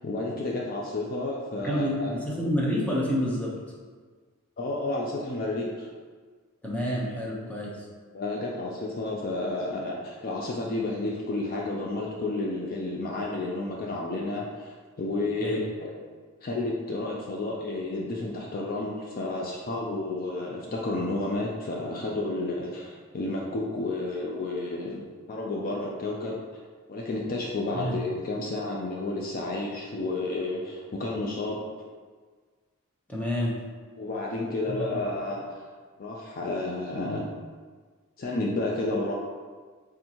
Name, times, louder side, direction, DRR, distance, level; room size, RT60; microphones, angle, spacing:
voice 1, 0.0-2.1 4.6-5.9 8.1-15.9 16.4-26.4 26.9-31.6 34.0-35.6 36.0-37.3 38.2-39.1, left 2 dB, 40° left, -2 dB, 0.4 m, -31 dB
voice 2, 1.6-3.5 6.6-7.7 15.4-15.6 27.7-28.0 33.1-33.6 34.7-34.8, equal, 5° left, -5 dB, 0.8 m, -28 dB
4.4 x 3.6 x 2.8 m, 1.5 s
head